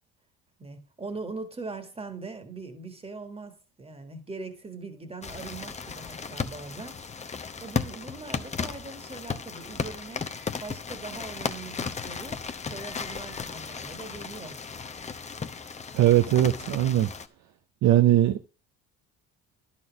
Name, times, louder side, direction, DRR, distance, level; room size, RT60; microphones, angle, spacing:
voice 1, 0.6-7.0 7.6-10.3 10.6-12.4 12.7-14.6 17.9-18.1, right 3 dB, 15° right, 1.7 m, -41 dB
sound 1, 5.2-17.3, left 5 dB, 20° left, 0.7 m, -35 dB
voice 2, 15.9-17.1 17.8-18.5, right 13 dB, 55° right, 0.7 m, -20 dB
10.5 x 4.3 x 7.1 m
supercardioid pair, 95°, 34 cm